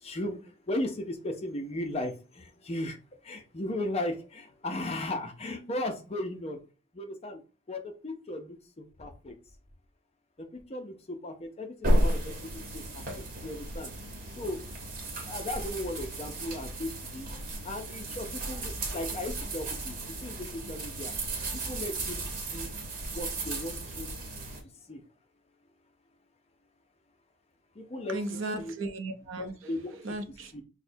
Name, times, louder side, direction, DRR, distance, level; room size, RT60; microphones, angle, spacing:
voice 1, 0.0-3.0 3.2-6.6 6.9-7.4 7.7-9.4 10.4-13.9 14.4-14.6 15.2-17.3 17.6-21.1 21.5-22.7 23.1-24.1 24.9-25.0 27.8-28.2 28.6-28.7 29.4-29.9 30.5-30.6, left 1 dB, 30° left, 6 dB, 0.5 m, -36 dB
sound 1, 11.8-24.6, right 1 dB, 40° right, 1.1 m, -33 dB
voice 2, 28.1-30.6, right 2 dB, 70° right, 7 dB, 0.7 m, -37 dB
6.1 x 2.1 x 2.6 m, 0.35 s
head